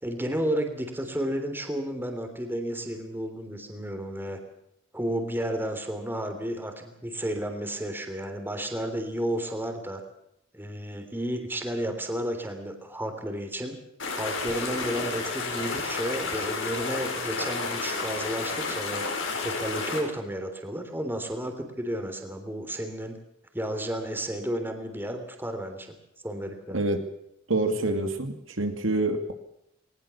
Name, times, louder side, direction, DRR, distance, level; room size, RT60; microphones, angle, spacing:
voice 1, 0.0-4.4 4.9-10.0 10.5-13.7 14.1-19.0 19.4-23.2 23.5-25.9 26.2-26.8, right 1 dB, 10° right, 6 dB, 3.3 m, -32 dB
sound 1, 14.0-20.0, left 3 dB, 70° left, 6.2 m, -31 dB
voice 2, 27.5-29.3, right 2 dB, 75° right, 6 dB, 2.6 m, -26 dB
20.5 x 20.0 x 7.1 m, 0.80 s
head